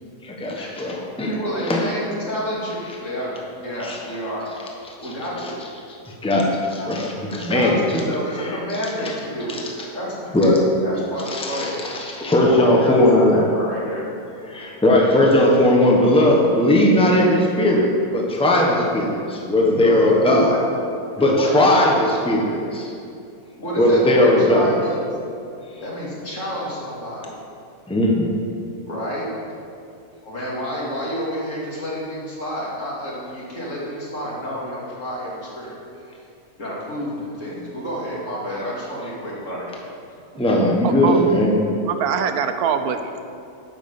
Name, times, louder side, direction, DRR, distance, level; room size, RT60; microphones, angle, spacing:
voice 1, 0.2-1.3 1.7-1.8 3.8-4.0 6.2-8.0 10.3-10.6 11.3-13.4 14.5-20.5 21.2-22.9 23.8-24.7 27.9-28.3 40.4-41.5, left 1 dB, 5° left, -2 dB, 1.1 m, -18 dB
voice 2, 1.3-3.3 3.6-4.4 5.0-5.6 6.8-6.9 7.4-9.6 9.9-10.5 10.8-11.8 12.4-14.1 19.7-20.6 21.1-21.6 23.6-25.0 25.8-27.3 28.8-29.3 30.2-35.8 36.6-39.9 41.4-41.5, equal, 55° left, -6 dB, 2.8 m, -29 dB
voice 3, 40.8-41.2 41.9-43.4, right 7 dB, 80° right, 8 dB, 1.1 m, -24 dB
11.0 x 7.6 x 5.6 m, 2.5 s
omnidirectional pair, 1.6 m